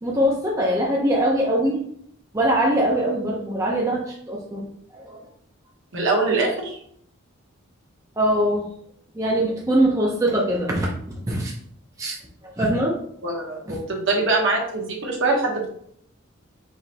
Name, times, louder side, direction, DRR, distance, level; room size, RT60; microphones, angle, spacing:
voice 1, 0.0-1.8 2.3-5.2 8.2-8.7 9.1-11.5 12.0-12.1 12.4-13.0 13.7-13.8, right 1 dB, 15° right, -3 dB, 0.6 m, -22 dB
voice 2, 5.9-6.8 13.2-15.7, right 3 dB, 60° right, -1 dB, 1.1 m, -23 dB
4.8 x 3.2 x 2.8 m, 0.67 s
head